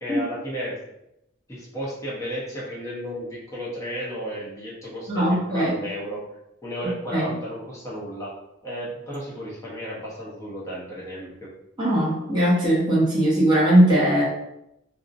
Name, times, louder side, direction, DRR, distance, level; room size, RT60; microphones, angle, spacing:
voice 1, 0.0-0.8 1.5-6.2 6.6-8.3 8.6-11.5, equal, 15° left, -6 dB, 0.6 m, -33 dB
voice 2, 5.1-5.7 7.1-7.3 11.8-14.3, right 1 dB, 20° right, -8 dB, 0.7 m, -19 dB
2.6 x 2.0 x 2.4 m, 0.85 s
head